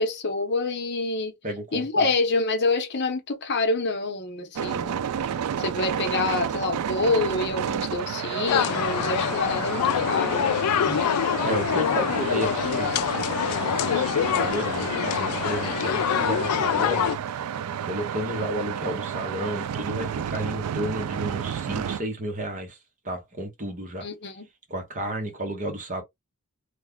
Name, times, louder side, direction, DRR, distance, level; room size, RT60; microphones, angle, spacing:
voice 1, 0.0-1.3 1.7-5.0 5.6-10.5 24.0-24.5, left 3 dB, 50° left, 0.8 m, -27 dB
voice 2, 1.4-2.1 10.8-11.0 11.4-17.1 17.8-22.8 23.0-24.1 24.7-26.0, right 1 dB, 35° right, 1.1 m, -32 dB
sound 1, 4.6-22.0, right 8 dB, 80° right, 0.3 m, -31 dB
sound 2, 8.5-17.2, left 9 dB, 85° left, 0.4 m, -25 dB
3.2 x 2.2 x 3.6 m
head